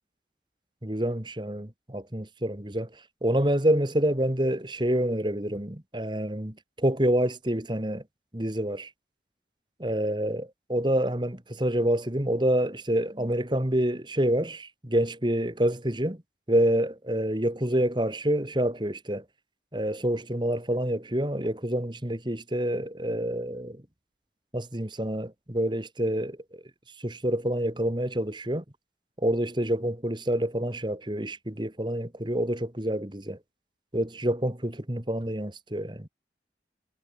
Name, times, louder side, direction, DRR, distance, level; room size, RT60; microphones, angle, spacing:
voice 1, 0.8-2.9 3.2-8.0 8.3-8.9 9.8-16.2 16.5-19.2 19.7-23.8 24.5-26.6 27.0-28.6 29.2-33.4 33.9-36.1, right 1 dB, 25° right, 2.1 m, -27 dB
head